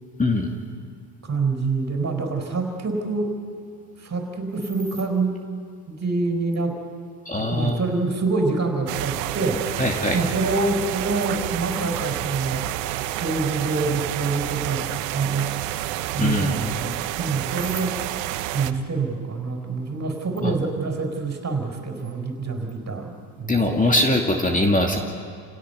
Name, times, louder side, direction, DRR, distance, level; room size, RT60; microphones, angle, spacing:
voice 1, 1.2-3.3 4.0-5.4 5.9-6.8 7.4-9.7 10.1-12.7 13.0-15.8 16.1-24.0, right 3 dB, 35° right, 4 dB, 4.8 m, -26 dB
voice 2, 7.3-7.8 9.8-10.2 16.2-16.5 20.4-20.5 23.5-25.0, left 1 dB, 15° left, 2 dB, 2.4 m, -21 dB
sound 1, 8.9-18.7, right 14 dB, 90° right, 0.9 m, -29 dB
29.0 x 17.5 x 6.9 m, 2.3 s
supercardioid pair, 80°, 47 cm